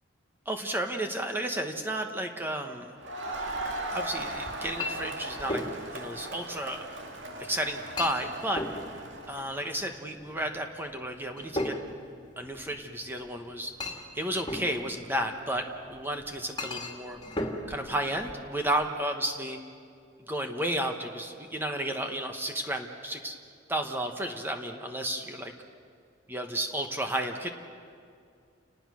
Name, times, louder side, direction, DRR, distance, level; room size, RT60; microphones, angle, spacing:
voice 1, 0.5-2.9 3.9-5.6 5.9-6.8 7.4-8.6 9.3-11.8 12.4-13.7 14.1-17.2 17.7-19.6 20.3-23.4 23.7-25.5 26.3-27.5, right 1 dB, 10° right, 4 dB, 1.2 m, -32 dB
Crowd, 3.0-9.6, right 2 dB, 75° right, 2.2 m, -38 dB
Chink clink, 3.3-18.9, left 1 dB, 25° left, 2.4 m, -39 dB
29.5 x 19.0 x 6.3 m, 2.3 s
head